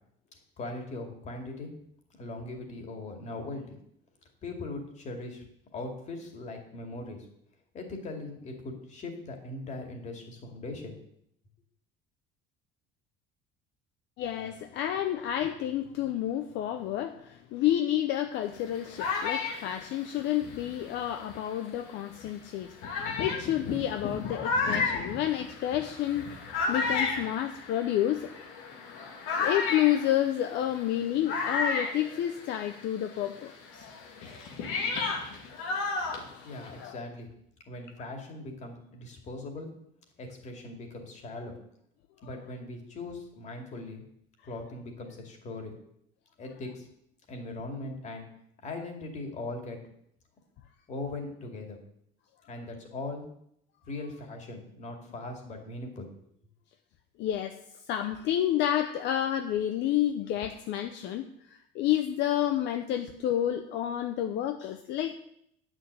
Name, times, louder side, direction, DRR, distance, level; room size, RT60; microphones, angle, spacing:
voice 1, 0.6-1.7 2.2-3.8 4.4-5.5 5.7-7.2 7.7-11.0 36.4-37.3 37.7-39.7 40.2-41.6 42.2-44.0 44.4-45.8 46.4-46.9 47.3-48.3 48.6-49.8 50.9-51.8 52.5-53.2 53.9-56.1, left 2 dB, 35° left, 3 dB, 2.4 m, -40 dB
voice 2, 14.2-26.4 26.7-28.4 29.4-33.9 36.3-36.4 36.7-37.0 57.2-57.6 57.9-65.2, left 12 dB, 65° left, 7 dB, 0.8 m, -30 dB
sound 1, 18.5-21.6 22.2-22.3 22.8-32.8 33.1-36.9, left 4 dB, 90° left, 2.5 m, -33 dB
9.7 x 6.3 x 7.9 m, 0.72 s
cardioid pair, 155°, 20 cm